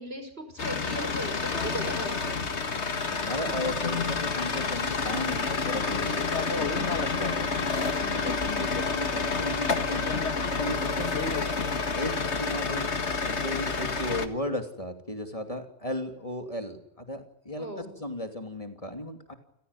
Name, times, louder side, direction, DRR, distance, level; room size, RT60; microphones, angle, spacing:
voice 1, 0.0-2.4 17.6-17.9, equal, 65° right, 7 dB, 6.2 m, -37 dB
sound 1, 0.6-14.3, left 4 dB, 85° left, 2.1 m, -29 dB
voice 2, 2.7-11.2 11.9-12.1 12.4-12.9 13.2-19.3, left 1 dB, 30° left, 6 dB, 2.9 m, -36 dB
29.5 x 16.5 x 9.8 m, 0.84 s
omnidirectional pair, 1.1 m